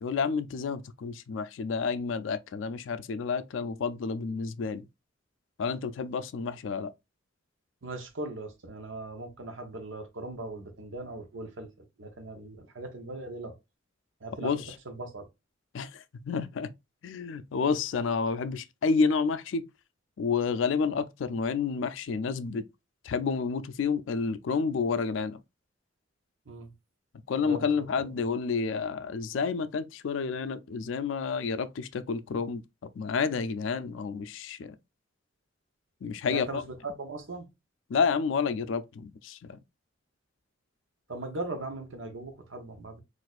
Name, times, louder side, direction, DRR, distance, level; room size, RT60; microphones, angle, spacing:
voice 1, 0.0-4.9 5.6-6.9 14.4-14.6 15.7-16.7 17.0-19.7 20.2-22.7 23.0-25.4 27.3-32.6 33.0-34.7 36.0-36.6 37.9-39.6, left 5 dB, 70° left, 0.4 m, -30 dB
voice 2, 7.8-11.7 12.0-13.6 14.2-15.3 26.5-26.7 27.4-28.1 36.3-37.5 41.1-43.0, right 2 dB, 70° right, 0.8 m, -39 dB
4.1 x 2.5 x 2.3 m
head